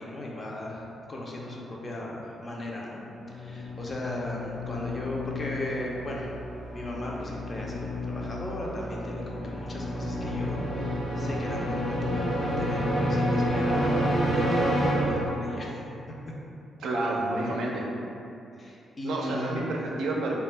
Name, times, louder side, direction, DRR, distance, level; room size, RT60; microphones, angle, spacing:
voice 1, 0.0-6.4 6.7-13.9 14.2-15.9 18.6-19.7, left 1 dB, 35° left, -2 dB, 0.4 m, -37 dB
sound 1, 3.1-15.8, equal, 90° left, 0.7 m, -29 dB
voice 2, 16.8-17.9 19.0-20.4, right 2 dB, 85° right, -2 dB, 0.4 m, -29 dB
2.2 x 2.0 x 3.2 m, 2.7 s
cardioid pair, 85°, 0 cm